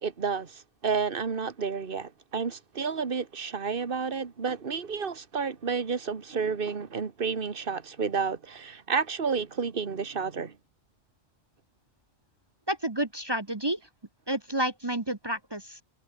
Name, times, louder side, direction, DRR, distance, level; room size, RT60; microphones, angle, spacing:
voice 1, 0.0-10.5, right 5 dB, 45° right, 1.7 m, -31 dB
voice 2, 12.7-13.8 14.3-15.8, right 1 dB, 20° right, 1.1 m, -30 dB
omnidirectional pair, 1.3 m